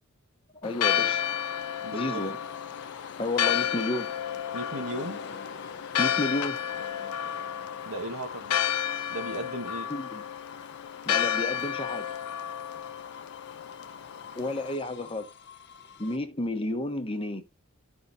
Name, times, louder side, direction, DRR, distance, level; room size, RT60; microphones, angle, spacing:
Church bell, 0.6-14.7, left 10 dB, 80° left, 0.4 m, -31 dB
voice 1, 0.6-1.3 1.9-2.4 3.2-4.1 6.0-6.6 9.9-10.2 11.1-12.1 14.4-15.3 16.0-17.5, left 1 dB, 25° left, 1.0 m, -31 dB
sound 1, 0.8-16.2, left 5 dB, 50° left, 0.8 m, -46 dB
voice 2, 1.8-2.3 4.5-5.2 7.8-8.6 9.1-9.9, right 1 dB, 75° right, 1.6 m, -36 dB
13.5 x 5.5 x 2.7 m
head